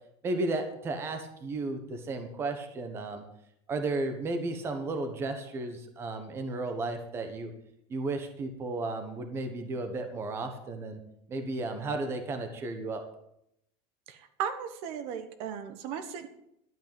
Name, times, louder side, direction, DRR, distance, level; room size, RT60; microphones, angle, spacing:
voice 1, 0.2-3.2 3.7-7.5 7.9-11.0 11.3-13.0, right 2 dB, 20° right, 6 dB, 1.1 m, -34 dB
voice 2, 14.1-16.3, right 8 dB, 50° right, 10 dB, 1.2 m, -36 dB
12.0 x 5.5 x 8.9 m, 0.77 s
cardioid pair, 180°, 13 cm